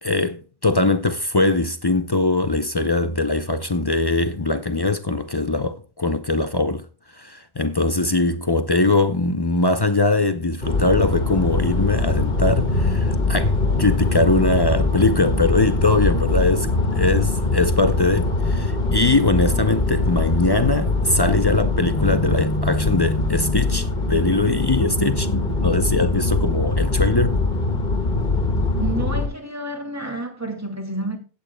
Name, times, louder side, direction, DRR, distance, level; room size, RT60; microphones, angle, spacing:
voice 1, 0.0-6.8 7.2-27.4, left 2 dB, 30° left, 0.5 m, -21 dB
sound 1, 10.6-29.3, left 2 dB, 50° left, 1.7 m, -22 dB
voice 2, 28.8-31.2, right 2 dB, 15° right, 2.2 m, -29 dB
16.5 x 8.6 x 2.2 m
omnidirectional pair, 1.1 m